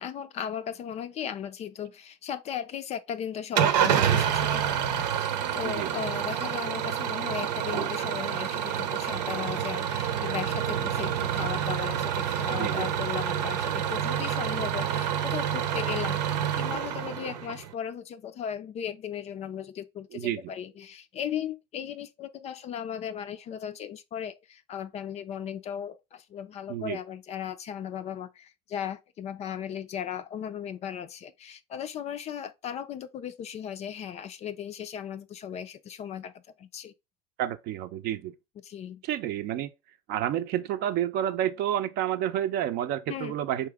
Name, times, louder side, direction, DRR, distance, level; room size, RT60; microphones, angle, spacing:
voice 1, 0.0-36.3 36.6-36.9 38.6-39.0 43.1-43.3, left 9 dB, 30° left, 0.4 m, -37 dB
Engine starting / Idling, 3.6-17.7, right 9 dB, 85° right, 0.8 m, -28 dB
voice 2, 12.5-12.8 20.1-20.5 26.7-27.0 37.4-38.3 39.0-39.7 40.1-43.7, right 11 dB, 50° right, 0.6 m, -30 dB
4.9 x 2.9 x 3.5 m
supercardioid pair, 125°, 21 cm